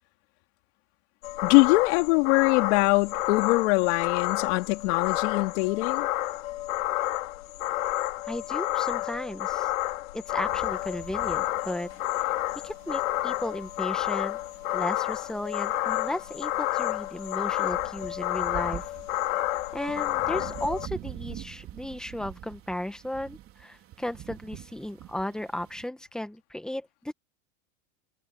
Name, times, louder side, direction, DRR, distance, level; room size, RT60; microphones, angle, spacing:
sound 1, 1.2-20.9, left 15 dB, 85° left, 4.3 m, -30 dB
voice 1, 1.4-6.1, left 25 dB, 55° left, 2.8 m, -23 dB
voice 2, 8.3-9.7 10.1-11.9 12.6-14.4 14.7-18.9 19.7-27.1, left 1 dB, ahead, 1.6 m, -35 dB
sound 2, 10.4-25.9, right 14 dB, 35° right, 3.5 m, -46 dB
supercardioid pair, 150°, 40 cm